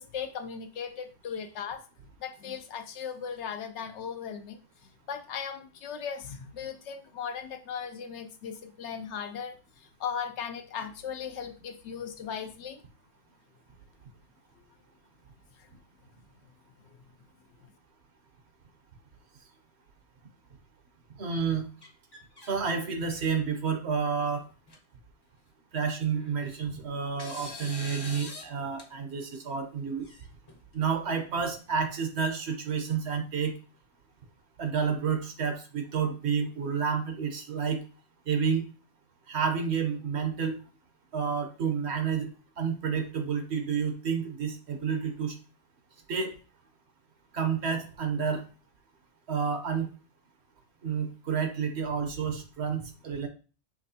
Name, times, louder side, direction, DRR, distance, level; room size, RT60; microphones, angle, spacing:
voice 1, 0.0-1.8 2.2-4.6 5.1-9.6 10.0-12.8, left 7 dB, 70° left, 8 dB, 0.8 m, -37 dB
voice 2, 21.2-21.7 22.5-24.4 25.7-30.1 30.7-33.5 34.6-37.8 38.3-38.6 39.3-40.6 41.1-42.3 42.6-45.3 46.1-46.3 47.3-48.4 49.3-49.9 50.8-53.3, right 6 dB, 60° right, 6 dB, 1.0 m, -30 dB
sound 1, 21.8-22.5 23.0-23.4 24.2-24.3 24.7-24.8 26.1-26.7 27.2-28.5 28.8-28.9 30.0-30.8, left 2 dB, 25° left, 0.7 m, -44 dB
6.0 x 3.1 x 2.7 m, 0.36 s
omnidirectional pair, 1.3 m